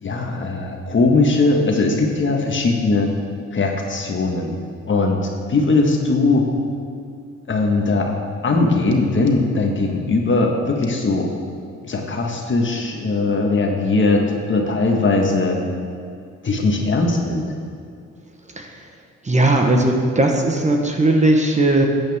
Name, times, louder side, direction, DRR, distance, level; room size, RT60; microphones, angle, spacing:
voice 1, 0.0-3.1 3.5-4.5 4.9-6.5 7.5-8.1 8.4-11.3 11.9-15.6 16.4-17.5, left 3 dB, 40° left, 1 dB, 1.6 m, -19 dB
voice 2, 19.2-21.8, right 2 dB, 25° right, 2 dB, 1.3 m, -17 dB
13.0 x 8.7 x 3.6 m, 2.3 s
cardioid pair, 90°, 30 cm